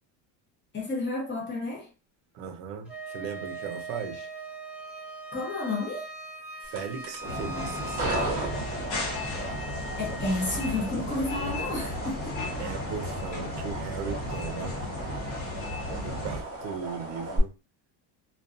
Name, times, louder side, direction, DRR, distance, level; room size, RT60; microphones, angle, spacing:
voice 1, 0.7-1.9 5.3-6.1 10.0-12.4, left 2 dB, 25° left, 0.8 m, -31 dB
voice 2, 2.3-4.3 6.6-8.1 12.6-14.8 16.0-17.5, right 6 dB, 60° right, 0.6 m, -37 dB
Wind instrument woodwind instrument, 2.9-10.7, right 2 dB, 5° right, 0.7 m, -41 dB
sound 1, 6.6-17.4, right 2 dB, 30° right, 0.9 m, -36 dB
sound 2, 7.2-16.4, left 1 dB, 55° left, 1.1 m, -35 dB
2.5 x 2.2 x 2.4 m
cardioid pair, 150°, 45 cm